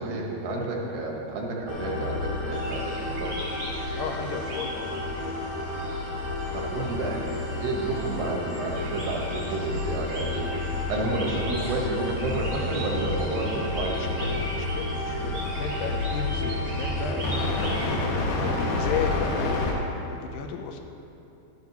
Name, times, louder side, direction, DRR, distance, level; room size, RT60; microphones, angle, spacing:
voice 1, 0.0-3.4 6.5-10.5 10.9-14.2, right 2 dB, 75° right, -1 dB, 3.2 m, -31 dB
sound 1, 1.7-19.7, left 2 dB, 65° left, 2.4 m, -30 dB
sound 2, 2.5-17.9, right 1 dB, 55° right, 1.2 m, -40 dB
voice 2, 3.9-5.4 6.4-6.9 11.2-12.1 13.2-13.6 13.9-20.8, left 6 dB, 85° left, 4 dB, 2.6 m, -36 dB
12.0 x 11.5 x 2.9 m, 2.8 s
omnidirectional pair, 4.8 m